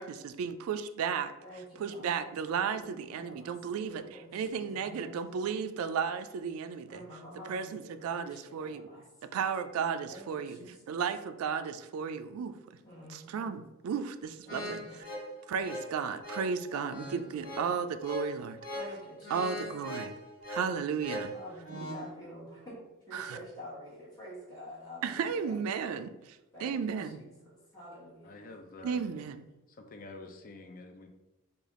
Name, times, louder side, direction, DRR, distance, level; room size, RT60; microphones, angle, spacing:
voice 1, 0.0-1.3 1.8-4.0 4.3-7.0 7.5-8.9 9.3-12.5 13.1-14.8 15.5-18.6 19.3-20.1 20.5-21.3 21.8-22.0 23.1-23.4 25.0-27.2 28.8-29.4, right 6 dB, 85° right, 11 dB, 0.3 m, -34 dB
voice 2, 1.4-2.3 2.7-5.4 6.8-9.4 10.0-11.0 12.8-13.3 14.4-15.0 16.7-17.5 18.7-19.4 21.3-25.6 26.5-28.4, equal, 20° left, -6 dB, 1.0 m, -49 dB
sound 1, 14.5-22.1, left 1 dB, 60° left, 1.2 m, -41 dB
voice 3, 28.2-29.0 29.7-31.1, left 2 dB, 40° left, 5 dB, 0.4 m, -48 dB
3.3 x 2.4 x 3.6 m, 0.99 s
head